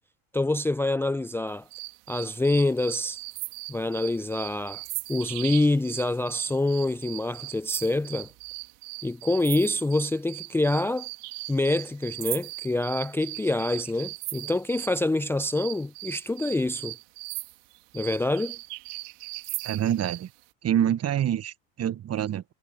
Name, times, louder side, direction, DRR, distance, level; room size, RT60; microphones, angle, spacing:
voice 1, 0.3-1.7 2.1-3.2 3.7-4.8 5.1-8.3 9.0-11.1 11.5-17.0 17.9-18.6, left 2 dB, 5° left, 0.6 m, -26 dB
sound 1, 1.7-15.0 15.5-20.3, right 32 dB, 65° right, 3.5 m, -38 dB
voice 2, 19.6-20.3 20.6-22.4, right 10 dB, 35° right, 1.2 m, -26 dB
hypercardioid pair, 65°, 41 cm